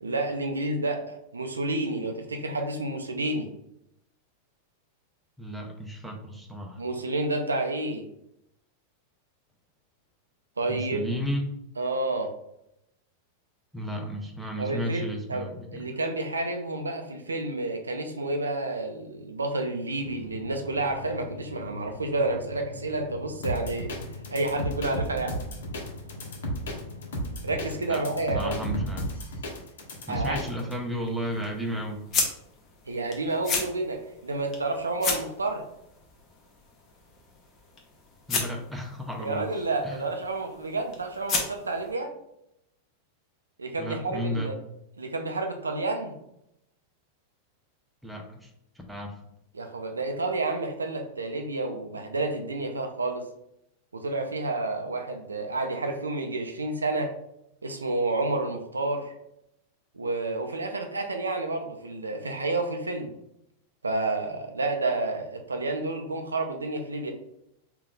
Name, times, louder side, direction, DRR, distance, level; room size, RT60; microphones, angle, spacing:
voice 1, 0.0-3.5 6.8-8.0 10.6-11.0 11.8-12.3 14.6-23.9 24.3-25.4 27.4-28.6 30.1-30.4 32.9-35.6 39.2-42.1 43.6-44.5 45.0-46.1 49.5-53.3 53.9-57.1 57.6-59.1 59.9-63.1 63.8-67.1, right 2 dB, 85° right, 5 dB, 0.4 m, -30 dB
voice 2, 5.4-6.8 10.7-11.5 13.7-15.9 27.9-28.0 28.3-29.1 30.1-32.0 38.3-39.5 39.8-40.0 43.8-44.5 48.0-48.5 48.9-49.2, equal, 5° right, 1 dB, 0.7 m, -33 dB
sound 1, 20.0-28.8, left 3 dB, 80° left, 0.4 m, -43 dB
sound 2, 23.4-30.7, equal, 65° left, 0.9 m, -33 dB
sound 3, 30.4-41.9, left 4 dB, 35° left, 0.9 m, -35 dB
3.3 x 2.4 x 3.8 m, 0.79 s
figure-of-eight pair, 90°, 0 cm